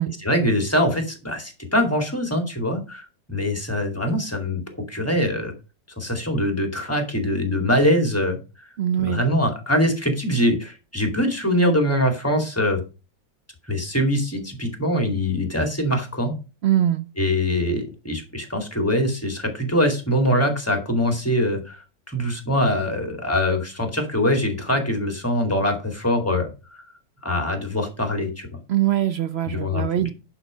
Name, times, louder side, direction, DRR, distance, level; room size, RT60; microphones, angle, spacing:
voice 1, 0.2-4.6 4.9-5.5 6.0-8.7 9.0-12.8 13.7-16.3 17.2-26.8 27.2-28.5 29.5-30.1, left 1 dB, 10° left, 4 dB, 2.3 m, -23 dB
voice 2, 8.8-9.2 16.6-17.1 28.7-30.1, right 11 dB, 85° right, 11 dB, 0.5 m, -22 dB
11.0 x 5.8 x 5.2 m, 0.31 s
omnidirectional pair, 1.9 m